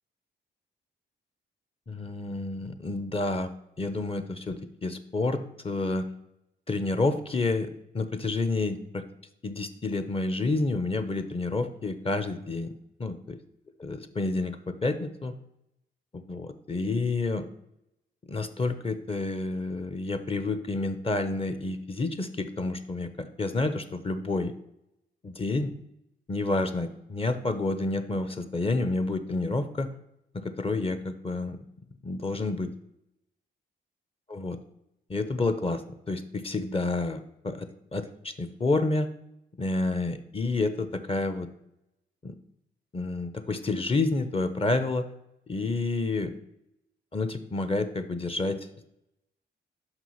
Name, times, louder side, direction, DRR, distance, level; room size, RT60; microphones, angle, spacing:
voice 1, 1.9-3.5 3.8-6.1 6.7-9.0 9.4-12.7 13.0-13.1 13.8-15.3 16.1-17.5 18.3-24.5 25.2-25.7 26.3-29.9 30.3-31.6 32.0-32.7 34.3-34.6 35.1-35.8 36.1-39.1 39.6-41.5 42.2-42.3 42.9-45.1 45.5-46.3 47.1-48.6, left 2 dB, 30° left, 10 dB, 0.8 m, -29 dB
6.0 x 5.2 x 5.7 m, 0.82 s
cardioid pair, 70°, 20 cm